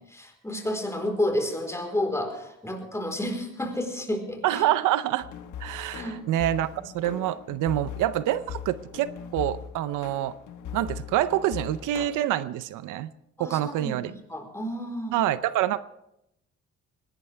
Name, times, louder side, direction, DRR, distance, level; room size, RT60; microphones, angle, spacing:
voice 1, 0.0-4.6 5.9-6.2 6.7-6.8 13.4-15.1, left 1 dB, 10° left, 3 dB, 4.2 m, -31 dB
voice 2, 4.4-5.3 5.6-6.7 6.9-10.3 10.7-13.1 13.4-14.1 15.1-15.8, right 13 dB, 90° right, 15 dB, 0.7 m, -26 dB
sound 1, 5.2-12.1, left 9 dB, 80° left, 1.3 m, -40 dB
21.0 x 18.0 x 3.4 m, 0.81 s
cardioid pair, 90°, 30 cm